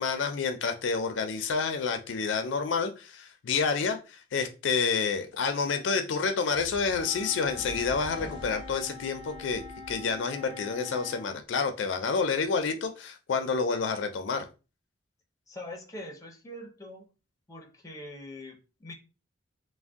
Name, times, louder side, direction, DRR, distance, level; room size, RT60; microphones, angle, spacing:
voice 1, 0.0-14.5, left 5 dB, 80° left, 7 dB, 0.4 m, -29 dB
sound 1, 6.4-10.2, equal, 50° right, 1.2 m, -46 dB
Wind instrument woodwind instrument, 6.9-11.3, left 5 dB, 35° right, 1.4 m, -44 dB
voice 2, 15.5-17.1 17.5-18.9, left 1 dB, 20° left, 3 dB, 0.6 m, -43 dB
2.5 x 2.1 x 3.4 m, 0.31 s
head